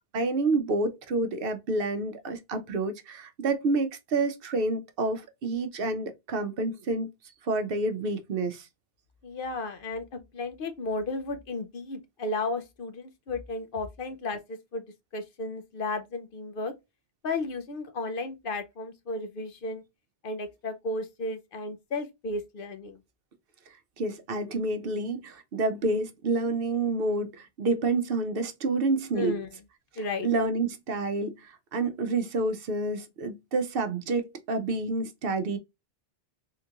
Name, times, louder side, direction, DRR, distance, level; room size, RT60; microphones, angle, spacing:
voice 1, 0.1-7.1 7.4-8.7 24.0-29.3 29.9-35.6, right 3 dB, 65° right, 0.8 m, -28 dB
voice 2, 9.2-14.8 15.1-16.7 17.2-19.8 20.2-23.0 29.2-29.5 30.0-30.3, left 2 dB, 60° left, 0.7 m, -34 dB
3.7 x 2.3 x 2.8 m
omnidirectional pair, 1.1 m